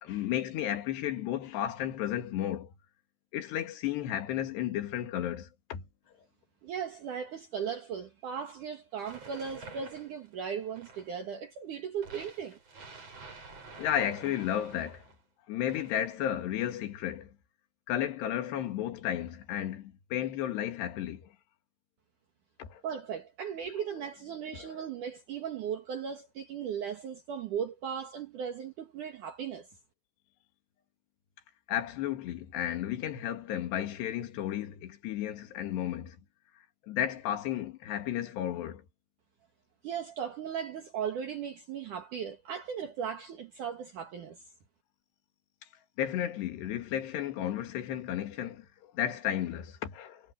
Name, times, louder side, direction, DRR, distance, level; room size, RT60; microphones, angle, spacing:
voice 1, 0.0-2.7 3.3-5.8 13.8-15.0 15.5-17.3 17.9-21.3 22.6-22.8 24.5-24.9 31.7-36.2 36.9-38.8 46.0-48.7 48.9-50.2, left 11 dB, 80° left, 4.0 m, -33 dB
voice 2, 6.6-12.6 22.8-29.7 39.8-44.4, right 7 dB, 60° right, 2.7 m, -37 dB
sound 1, 9.0-11.3 12.0-15.2 15.7-16.3, right 4 dB, 35° right, 6.1 m, -49 dB
omnidirectional pair, 4.8 m